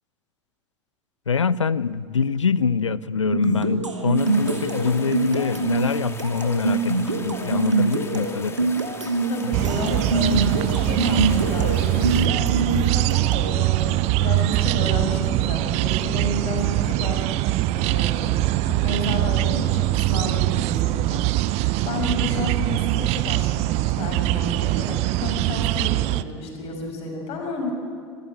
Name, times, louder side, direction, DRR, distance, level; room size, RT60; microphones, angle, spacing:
voice 1, 1.3-8.7 22.3-22.5, left 5 dB, 80° left, 20 dB, 0.6 m, -24 dB
sound 1, 3.3-13.6, right 3 dB, 85° right, 1.8 m, -25 dB
sound 2, 4.2-12.3, left 3 dB, 15° left, 2.6 m, -40 dB
voice 2, 9.3-17.2 17.7-27.7, left 1 dB, 40° left, 1 dB, 6.6 m, -31 dB
sound 3, 9.5-26.2, right 17 dB, 45° right, 0.7 m, -22 dB
25.5 x 14.5 x 9.1 m, 2.2 s
figure-of-eight pair, 75°, 15 cm